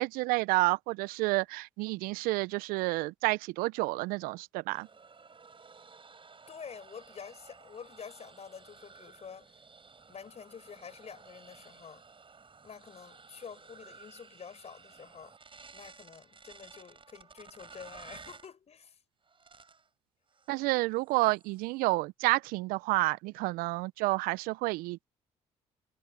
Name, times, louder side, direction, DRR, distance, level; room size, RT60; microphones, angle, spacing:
voice 1, 0.0-4.9 20.5-25.0, right 22 dB, 70° right, 1.1 m, -30 dB
sound 1, 4.7-18.5 19.3-19.9 20.3-20.6 21.0-21.7, right 4 dB, 35° right, 6.6 m, -54 dB
voice 2, 6.5-9.5 10.1-12.0 12.6-15.3 15.7-19.0, left 6 dB, 45° left, 5.6 m, -48 dB
hypercardioid pair, 45°, 15 cm